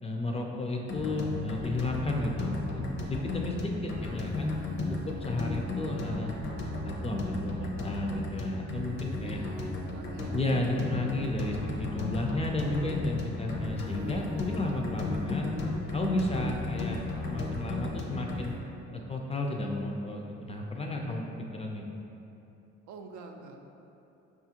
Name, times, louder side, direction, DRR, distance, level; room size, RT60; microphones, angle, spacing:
voice 1, 0.0-4.5 5.1-6.4 6.8-9.4 10.0-15.5 15.9-18.5 19.1-21.2 21.5-21.8, left 2 dB, 20° left, 0 dB, 0.4 m, -33 dB
sound 1, 0.9-18.6, left 2 dB, 60° left, 0.7 m, -35 dB
voice 2, 9.2-10.4 22.9-23.6, right 4 dB, 75° right, 3 dB, 0.5 m, -47 dB
5.4 x 2.5 x 2.8 m, 2.9 s
cardioid pair, 90°, 30 cm